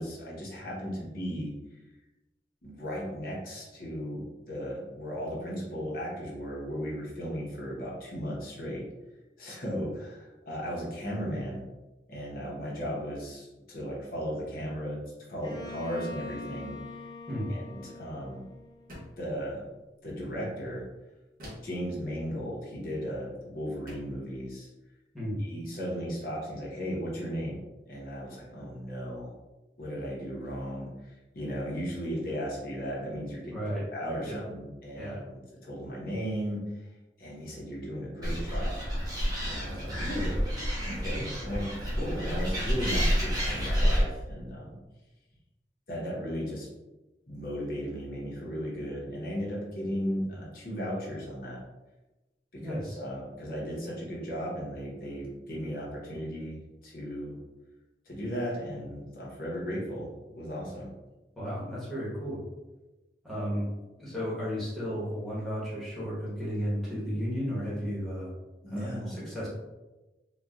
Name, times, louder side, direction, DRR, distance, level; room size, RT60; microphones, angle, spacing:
voice 1, 0.0-1.5 2.6-8.9 9.4-11.6 12.1-15.0 15.3-16.7 17.5-18.4 19.2-19.6 20.0-20.8 21.6-24.7 25.4-27.6 27.9-29.3 29.8-33.5 33.9-36.6 37.2-38.9 39.4-40.4 40.8-44.8 45.9-46.7 47.3-51.6 52.5-57.4 58.1-60.1 60.3-60.9 68.6-69.2, equal, 50° left, -4 dB, 0.8 m, -36 dB
Bowed string instrument, 15.4-19.2, left 3 dB, 25° left, 0.4 m, -44 dB
sound 1, 18.9-19.3 21.4-21.8 23.2-23.3 23.9-24.2, equal, 50° right, 0.9 m, -46 dB
voice 2, 33.5-33.8 34.2-34.4 35.0-35.2 52.6-53.0 61.3-62.4 63.2-63.7 64.0-68.3 68.7-69.5, equal, ahead, -9 dB, 1.1 m, -33 dB
Animal, 38.2-44.0, equal, 20° right, 0.9 m, -29 dB
4.0 x 2.3 x 2.3 m, 1.1 s
head